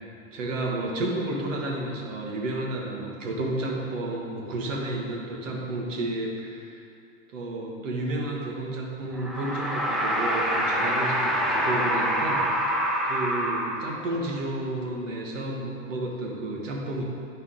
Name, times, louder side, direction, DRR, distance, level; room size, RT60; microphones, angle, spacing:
voice 1, 0.3-6.8 7.3-12.4 13.0-17.0, right 2 dB, 65° right, -1 dB, 1.5 m, -31 dB
sound 1, 9.1-14.2, equal, ahead, 0.6 m, -26 dB
9.1 x 5.5 x 3.8 m, 2.5 s
figure-of-eight pair, 85°, 40 cm